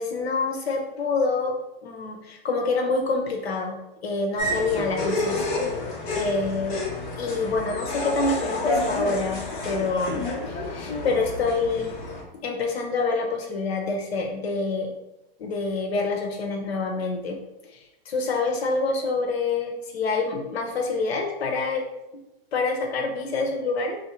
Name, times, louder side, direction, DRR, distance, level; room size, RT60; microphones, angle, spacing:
voice 1, 0.0-1.5 1.8-5.5 6.1-6.8 7.2-11.9 12.4-14.9 15.4-17.4 17.7-17.8 18.1-21.8 22.5-24.0, left 3 dB, 85° left, 2 dB, 0.9 m, -27 dB
sound 1, 4.4-12.2, left 2 dB, 50° left, 1.3 m, -29 dB
3.1 x 2.7 x 4.4 m, 0.93 s
hypercardioid pair, 145°, 30 cm